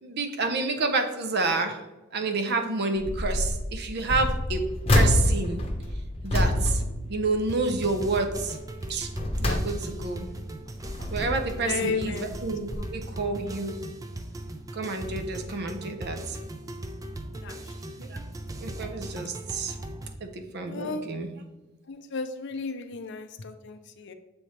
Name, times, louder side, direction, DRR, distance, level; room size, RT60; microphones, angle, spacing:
voice 1, 0.0-1.8 2.1-4.6 4.9-5.6 6.2-6.8 7.1-8.6 8.9-9.1 9.4-10.3 11.1-13.8 14.7-16.4 18.0-18.2 18.6-19.7 20.2-21.3, right 3 dB, 55° right, 6 dB, 0.7 m, -29 dB
sound 1, 3.0-3.6 4.0-7.7 8.1-8.4 8.9-10.2 10.7-11.6 12.3-12.5 12.7-12.8, left 1 dB, 30° left, 0.8 m, -26 dB
sound 2, 7.5-20.2, right 1 dB, 15° right, 0.4 m, -38 dB
voice 2, 11.5-12.3 12.8-12.9 17.3-17.6 20.7-21.1 21.9-24.1, left 4 dB, 60° left, 9 dB, 0.5 m, -33 dB
7.1 x 3.3 x 4.2 m, 1.1 s
head